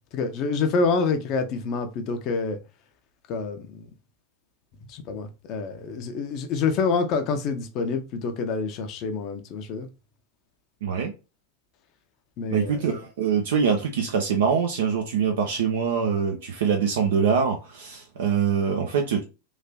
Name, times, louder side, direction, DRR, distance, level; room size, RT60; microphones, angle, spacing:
voice 1, 0.1-2.6 3.3-3.9 4.9-9.9 12.4-12.8, left 4 dB, 40° left, 0.5 m, -27 dB
voice 2, 10.8-11.1 12.5-19.2, right 6 dB, 60° right, 0.4 m, -24 dB
3.2 x 2.5 x 2.3 m
figure-of-eight pair, 90°, 0 cm